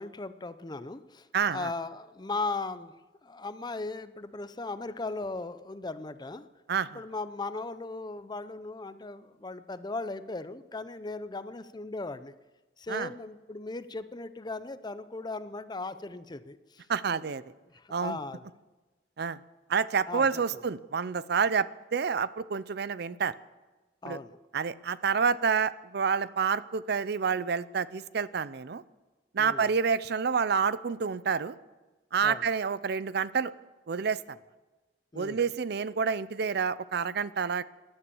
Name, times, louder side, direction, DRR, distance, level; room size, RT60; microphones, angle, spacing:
voice 1, 0.0-2.9 3.2-6.5 6.9-12.3 12.8-17.2 17.7-18.5 20.1-20.3 20.5-20.6 24.0-24.4 29.4-29.7 32.2-32.5 35.1-35.5, left 3 dB, 25° left, 13 dB, 0.6 m, -38 dB
voice 2, 1.3-1.7 6.7-7.0 12.9-13.1 16.9-17.4 17.9-18.2 19.2-19.4 19.7-23.3 24.0-24.2 24.5-28.8 29.3-31.5 32.1-33.5 33.9-34.4 35.1-37.6, right 6 dB, 60° right, 17 dB, 0.5 m, -28 dB
17.0 x 11.5 x 7.0 m, 1.2 s
head